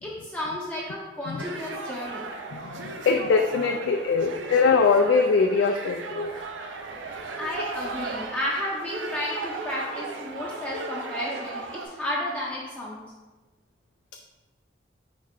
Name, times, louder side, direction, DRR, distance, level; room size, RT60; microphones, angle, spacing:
voice 1, 0.0-2.3 4.3-4.4 7.4-13.0, left 1 dB, 10° left, -6 dB, 0.5 m, -32 dB
sound 1, 1.4-11.9, right 3 dB, 85° right, 0.5 m, -36 dB
voice 2, 2.5-6.5, left 4 dB, 75° left, 4 dB, 0.3 m, -22 dB
4.7 x 3.2 x 3.5 m, 1.2 s
head